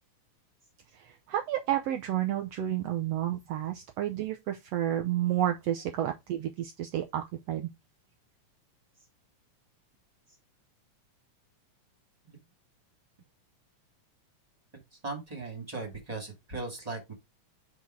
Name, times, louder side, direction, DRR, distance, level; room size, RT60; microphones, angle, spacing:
voice 1, 0.9-7.7, right 12 dB, 85° right, 1.4 m, -31 dB
voice 2, 15.0-17.1, right 3 dB, 15° right, 2.1 m, -38 dB
5.9 x 4.1 x 4.7 m
omnidirectional pair, 3.8 m